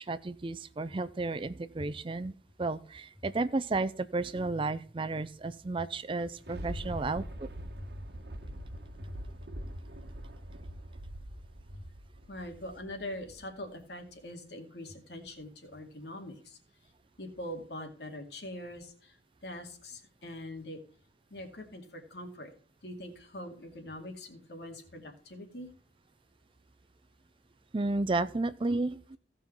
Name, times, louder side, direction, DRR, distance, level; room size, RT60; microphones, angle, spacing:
voice 1, 0.0-7.5 27.7-29.2, right 3 dB, 30° right, 14 dB, 0.5 m, -33 dB
Thunder, 6.0-13.6 14.1-14.2, equal, 65° right, 1.2 m, -43 dB
voice 2, 12.3-16.6 17.2-19.2 19.4-20.8 21.3-22.5 22.8-25.7, left 1 dB, 70° left, 4 dB, 2.4 m, -43 dB
16.5 x 5.6 x 4.5 m, 0.43 s
head